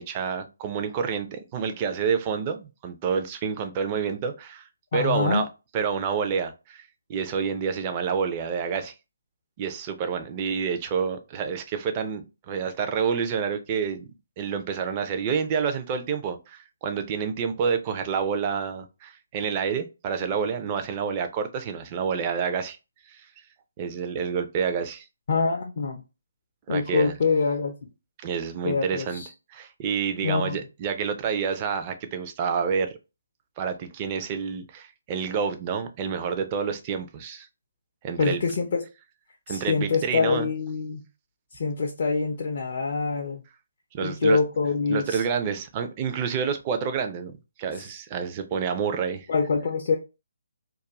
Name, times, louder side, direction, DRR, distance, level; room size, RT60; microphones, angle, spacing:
voice 1, 0.0-4.7 4.9-5.5 5.7-8.9 9.6-14.1 14.4-22.8 23.1-23.3 23.8-25.1 26.7-27.1 28.2-29.2 29.5-33.0 33.6-37.5 38.0-38.4 39.5-40.5 43.9-44.4 44.9-49.3, right 6 dB, 25° right, 0.4 m, -28 dB
voice 2, 4.9-5.4 25.3-26.0 26.7-27.9 28.6-29.3 30.2-30.6 38.2-38.9 39.5-41.0 41.5-43.4 44.0-45.2 49.3-50.0, left 4 dB, 45° left, 0.4 m, -25 dB
2.3 x 2.2 x 2.9 m
figure-of-eight pair, 140°, 0 cm